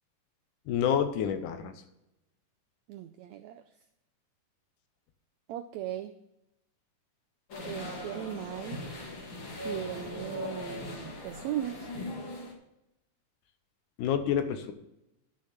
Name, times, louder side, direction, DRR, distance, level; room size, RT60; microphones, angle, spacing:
voice 1, 0.7-1.7 14.0-14.7, left 8 dB, 75° left, 9 dB, 2.3 m, -28 dB
voice 2, 2.9-3.6 5.5-6.1 7.7-8.8 9.6-11.9, right 12 dB, 90° right, 10 dB, 1.5 m, -38 dB
sound 1, 7.5-12.5, left 1 dB, 45° left, 2.1 m, -39 dB
12.0 x 6.4 x 5.8 m, 0.87 s
omnidirectional pair, 3.8 m